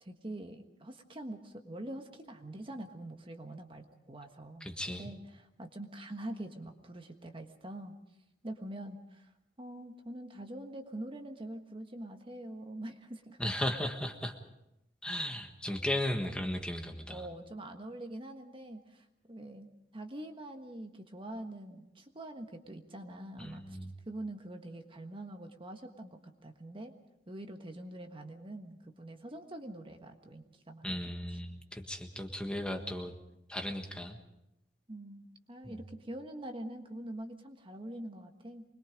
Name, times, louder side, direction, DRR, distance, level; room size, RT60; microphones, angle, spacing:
voice 1, 0.0-8.0 8.4-9.3 9.6-13.4 15.7-15.8 17.1-19.7 19.9-23.8 24.1-26.9 27.3-30.9 34.9-38.6, right 1 dB, 30° right, 5 dB, 1.4 m, -44 dB
voice 2, 4.6-5.1 13.4-14.3 15.0-17.2 23.4-23.9 30.8-33.1 33.5-34.2 35.6-35.7, left 1 dB, 5° left, 4 dB, 1.5 m, -36 dB
24.5 x 21.5 x 5.2 m, 0.88 s
head